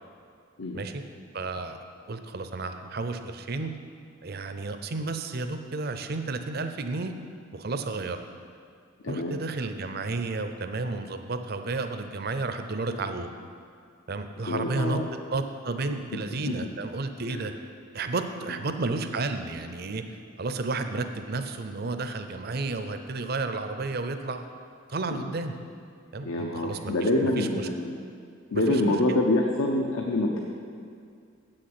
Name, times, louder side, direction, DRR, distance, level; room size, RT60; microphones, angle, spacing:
voice 1, 1.3-1.8 2.1-3.7 4.2-7.2 7.5-8.2 9.1-13.3 14.1-15.0 15.3-17.5 17.9-20.0 20.4-24.5 24.9-25.5 26.1-27.7 28.5-29.2, right 3 dB, 45° right, 8 dB, 0.6 m, -32 dB
voice 2, 9.0-9.4 14.5-15.0 17.3-17.4 25.1-25.3 26.2-28.0 28.5-30.4, left 1 dB, 75° left, 0 dB, 0.8 m, -26 dB
8.0 x 6.6 x 7.7 m, 2.3 s
head